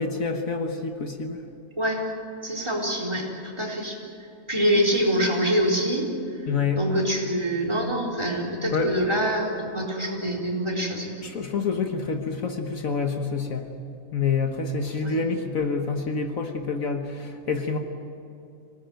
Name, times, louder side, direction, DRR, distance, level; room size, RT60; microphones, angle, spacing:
voice 1, 0.0-1.4 6.5-6.9 8.7-9.0 11.2-13.7 14.1-17.8, left 4 dB, 60° left, 5 dB, 1.7 m, -27 dB
voice 2, 2.4-4.0 4.5-6.1 6.7-11.1 15.0-15.2, equal, 15° right, 0 dB, 4.3 m, -25 dB
26.0 x 18.5 x 9.1 m, 2.8 s
omnidirectional pair, 1.6 m